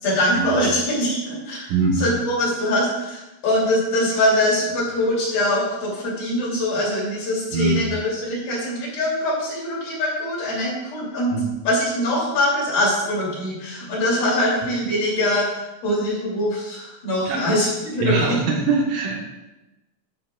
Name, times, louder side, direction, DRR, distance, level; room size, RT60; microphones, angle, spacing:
voice 1, 0.0-1.7 2.0-11.3 11.6-15.5 15.8-18.4, left 1 dB, 50° left, -5 dB, 4.5 m, -23 dB
voice 2, 1.7-2.1 7.5-7.8 11.3-11.4 17.2-17.5 18.0-19.2, right 3 dB, 80° right, -1 dB, 4.3 m, -22 dB
11.5 x 11.5 x 2.5 m, 1.0 s
omnidirectional pair, 5.9 m